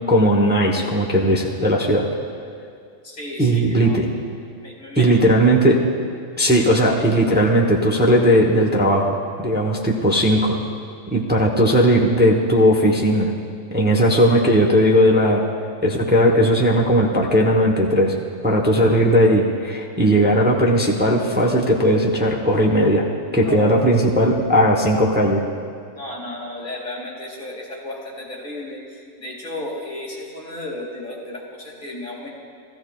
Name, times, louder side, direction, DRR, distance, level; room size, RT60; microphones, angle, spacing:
voice 1, 0.1-2.0 3.4-4.1 4.9-5.8 6.4-9.2 9.4-10.6 11.1-13.3 13.7-15.4 15.8-18.1 18.4-23.0 23.3-25.4, equal, 10° right, -1 dB, 0.8 m, -17 dB
voice 2, 3.0-4.0 4.6-5.2 23.4-23.8 25.9-32.3, left 1 dB, 35° left, -3 dB, 2.4 m, -34 dB
15.5 x 14.5 x 2.3 m, 2.2 s
omnidirectional pair, 1.4 m